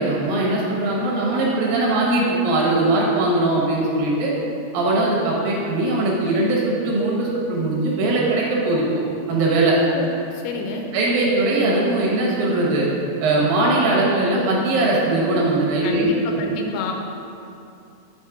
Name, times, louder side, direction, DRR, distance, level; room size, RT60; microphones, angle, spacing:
voice 1, 0.0-4.3 4.7-8.8 9.3-9.8 10.9-12.9 13.2-16.2, right 2 dB, 75° right, -4 dB, 2.6 m, -20 dB
voice 2, 10.3-10.9 15.8-16.9, left 3 dB, 90° left, 2 dB, 2.5 m, -29 dB
7.3 x 3.0 x 4.7 m, 2.6 s
omnidirectional pair, 4.2 m